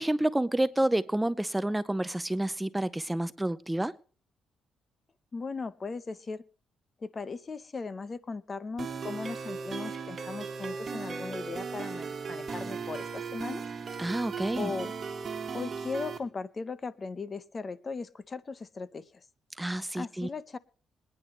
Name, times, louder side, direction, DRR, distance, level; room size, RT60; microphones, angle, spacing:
voice 1, 0.0-3.9 14.0-14.7 19.6-20.3, right 1 dB, 10° right, 0.5 m, -29 dB
voice 2, 5.3-6.4 7.0-13.6 14.6-14.9 15.5-19.2 19.9-20.6, left 4 dB, 35° left, 0.8 m, -38 dB
sound 1, 8.8-16.2, right 5 dB, 40° right, 2.0 m, -37 dB
22.0 x 10.0 x 3.1 m
cardioid pair, 90°, 0 cm